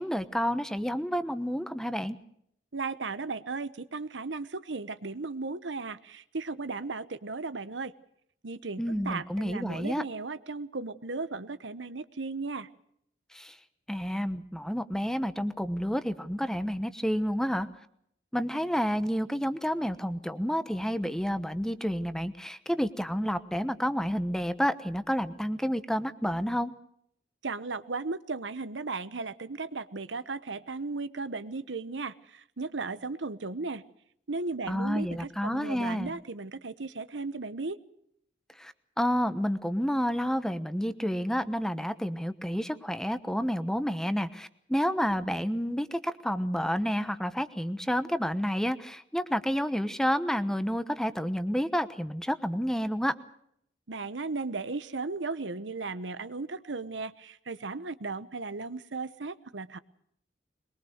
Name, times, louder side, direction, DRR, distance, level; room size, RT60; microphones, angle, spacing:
voice 1, 0.0-2.2 8.8-10.0 13.3-13.5 13.9-17.7 18.3-26.7 34.7-36.1 38.6-53.1, equal, 5° left, 11 dB, 1.1 m, -30 dB
voice 2, 2.7-7.9 8.4-12.7 27.4-33.8 34.3-37.8 53.9-59.8, right 3 dB, 85° right, 14 dB, 1.1 m, -36 dB
22.5 x 22.0 x 6.5 m, 0.71 s
head